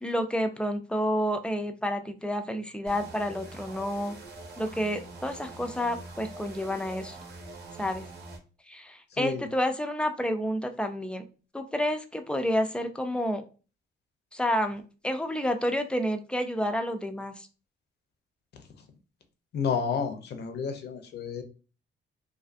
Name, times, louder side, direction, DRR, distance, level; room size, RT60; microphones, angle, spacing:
voice 1, 0.0-4.1 4.6-7.2 7.8-8.1 8.7-11.2 11.5-13.4 14.3-17.5, equal, 5° left, 7 dB, 0.4 m, -29 dB
sound 1, 2.9-8.4, right 2 dB, 60° right, 0.8 m, -44 dB
voice 2, 9.1-9.5 19.5-21.4, left 6 dB, 60° left, 7 dB, 0.6 m, -30 dB
2.5 x 2.3 x 2.5 m, 0.34 s
cardioid pair, 90°, 20 cm